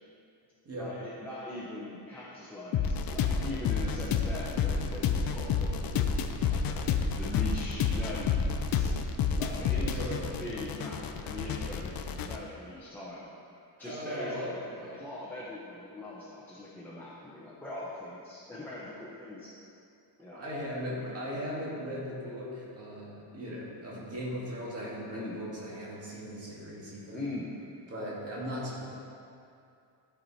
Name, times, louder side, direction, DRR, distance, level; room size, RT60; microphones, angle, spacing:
voice 1, 0.7-6.9 7.2-9.0 9.4-13.3 13.8-19.5 20.2-20.4 25.1-25.4 27.1-27.5, left 2 dB, 5° left, -9 dB, 0.9 m, -41 dB
sound 1, 2.7-12.4, left 6 dB, 55° left, 0.5 m, -30 dB
voice 2, 9.8-10.4 13.8-15.1 20.3-27.2 27.9-28.8, equal, 35° right, -6 dB, 2.0 m, -38 dB
12.5 x 4.9 x 4.2 m, 2.5 s
wide cardioid pair, 175°, 43 cm